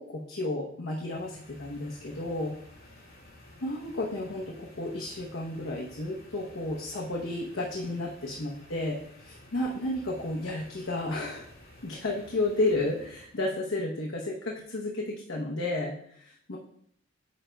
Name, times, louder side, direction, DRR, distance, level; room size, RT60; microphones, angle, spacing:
voice 1, 0.0-2.6 3.6-11.5 11.8-16.6, left 2 dB, 75° left, -2 dB, 0.9 m, -32 dB
sound 1, 0.9-13.5, left 1 dB, 55° left, 2.0 m, -53 dB
9.4 x 5.0 x 2.3 m, 0.66 s
head